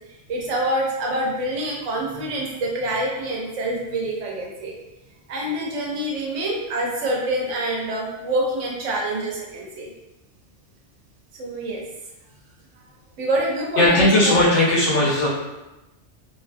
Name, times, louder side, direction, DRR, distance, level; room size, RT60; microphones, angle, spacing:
voice 1, 0.3-4.8 5.3-9.9 11.3-11.8 13.2-14.3 14.9-15.1, right 1 dB, 85° right, -2 dB, 1.0 m, -26 dB
voice 2, 13.8-15.3, left 1 dB, 80° left, -6 dB, 1.0 m, -17 dB
2.6 x 2.2 x 2.5 m, 1.0 s
omnidirectional pair, 1.2 m